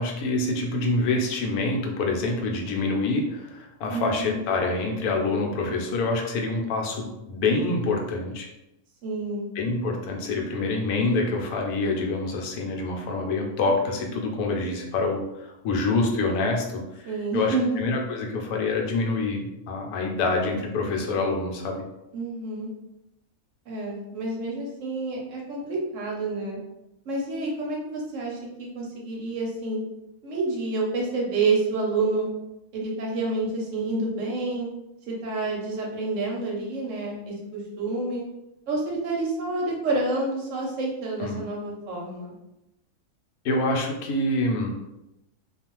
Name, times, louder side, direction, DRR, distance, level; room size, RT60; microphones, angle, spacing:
voice 1, 0.0-8.5 9.6-21.8 41.2-41.4 43.4-44.8, left 3 dB, 85° left, 1 dB, 1.1 m, -26 dB
voice 2, 3.9-4.4 9.0-9.5 17.0-17.8 22.1-22.7 23.7-26.6 27.1-29.8 30.2-32.3 32.7-34.7 35.1-38.2 38.7-42.3, right 3 dB, 65° right, -1 dB, 0.9 m, -28 dB
2.5 x 2.3 x 2.9 m, 0.89 s
omnidirectional pair, 1.5 m